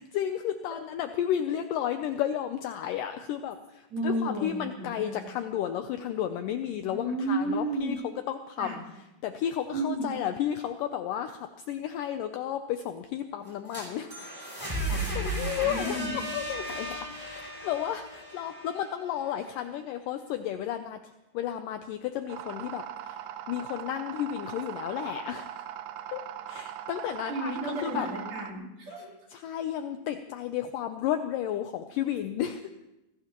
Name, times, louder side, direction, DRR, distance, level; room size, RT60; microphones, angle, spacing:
voice 1, 0.0-8.0 8.3-8.7 9.2-14.1 14.9-21.0 21.3-25.5 26.1-28.1 29.3-32.6, left 10 dB, 80° left, 8 dB, 2.0 m, -33 dB
voice 2, 3.9-5.2 6.9-7.9 8.6-8.8 9.7-10.2 14.9-16.2 27.3-29.1, right 1 dB, 35° right, -4 dB, 4.5 m, -33 dB
sound 1, 13.5-19.3, right 1 dB, 5° right, 5.7 m, -35 dB
sound 2, 22.3-28.5, right 11 dB, 80° right, 2.2 m, -40 dB
24.0 x 18.5 x 3.0 m, 0.96 s
omnidirectional pair, 4.4 m